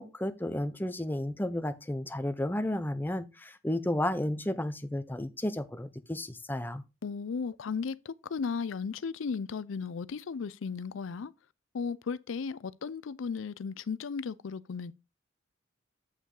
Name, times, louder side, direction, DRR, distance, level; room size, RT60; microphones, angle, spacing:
voice 1, 0.0-6.8, left 1 dB, 10° left, 0.6 m, -32 dB
voice 2, 7.0-11.3 11.7-14.9, left 5 dB, 75° left, 0.5 m, -35 dB
8.2 x 5.2 x 3.8 m
head